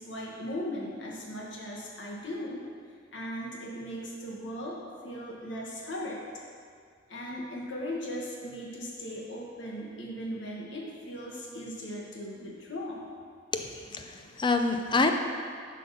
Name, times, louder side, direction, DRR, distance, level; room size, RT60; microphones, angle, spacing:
voice 1, 0.0-2.6 3.1-6.2 7.1-13.1 14.1-14.3, equal, 80° left, -3 dB, 1.7 m, -38 dB
voice 2, 13.5-15.1, left 3 dB, 25° left, 5 dB, 0.5 m, -27 dB
11.0 x 4.1 x 5.8 m, 2.1 s
head